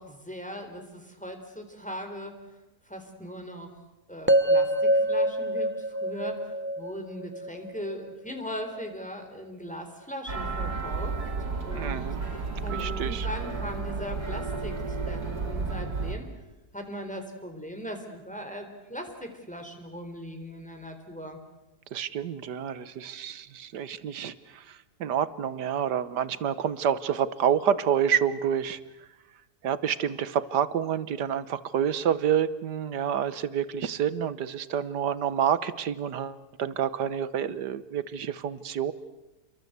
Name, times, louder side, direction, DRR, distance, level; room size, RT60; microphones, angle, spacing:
voice 1, 0.0-2.4 2.9-3.7 4.1-11.2 11.6-16.3 16.7-21.4, equal, 5° left, 4 dB, 3.9 m, -39 dB
sound 1, 4.3-8.4, right 1 dB, 15° right, 0.4 m, -25 dB
sound 2, 10.3-16.2, right 4 dB, 65° right, 3.3 m, -32 dB
voice 2, 11.7-12.2 12.7-13.3 21.9-28.8 29.6-38.9, right 8 dB, 85° right, 15 dB, 1.7 m, -28 dB
29.0 x 23.0 x 8.1 m, 1.0 s
omnidirectional pair, 1.7 m